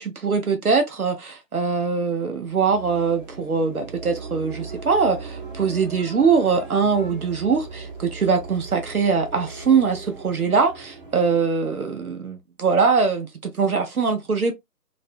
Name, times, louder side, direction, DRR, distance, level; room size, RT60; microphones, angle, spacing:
voice 1, 0.0-14.5, right 5 dB, 65° right, 0.6 m, -22 dB
sound 1, 2.3-11.6, right 4 dB, 35° right, 0.8 m, -38 dB
2.4 x 2.1 x 2.4 m
figure-of-eight pair, 155°, 48 cm